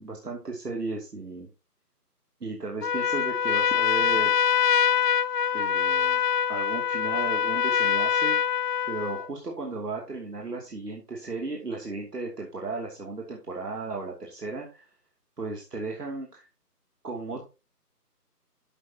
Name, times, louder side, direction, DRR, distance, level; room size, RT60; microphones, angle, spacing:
voice 1, 0.0-1.5 2.4-4.3 5.5-6.2 6.5-8.4 8.8-14.9 15.4-16.5 17.0-17.4, right 3 dB, 75° right, 0 dB, 2.9 m, -35 dB
Trumpet, 2.8-9.3, left 8 dB, 75° left, 0.6 m, -24 dB
11.5 x 7.8 x 2.9 m, 0.30 s
figure-of-eight pair, 155°, 48 cm